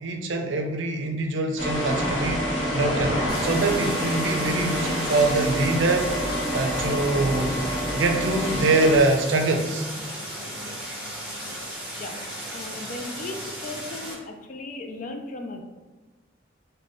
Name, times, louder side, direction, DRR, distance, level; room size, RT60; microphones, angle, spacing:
voice 1, 0.0-6.1 6.5-7.6 7.9-9.9, right 2 dB, 85° right, 4 dB, 0.5 m, -24 dB
sound 1, 1.6-9.0, equal, 85° left, 1.1 m, -27 dB
Stream, 3.3-14.1, right 1 dB, 5° right, 1.1 m, -35 dB
voice 2, 12.5-15.6, left 2 dB, 45° left, 5 dB, 0.4 m, -36 dB
3.9 x 2.2 x 3.4 m, 1.3 s
head